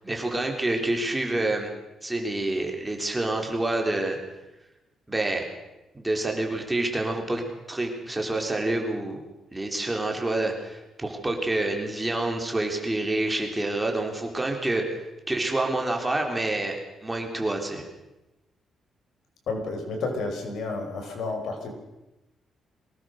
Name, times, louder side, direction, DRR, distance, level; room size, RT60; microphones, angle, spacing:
voice 1, 0.0-1.7 2.0-4.2 5.1-5.4 5.9-7.4 7.7-9.2 9.5-14.8 15.3-16.8 17.0-17.9, right 2 dB, 10° right, 2 dB, 3.9 m, -27 dB
voice 2, 19.5-21.7, left 3 dB, 70° left, 3 dB, 5.5 m, -31 dB
23.0 x 19.0 x 6.6 m, 1.0 s
cardioid pair, 130°, 0 cm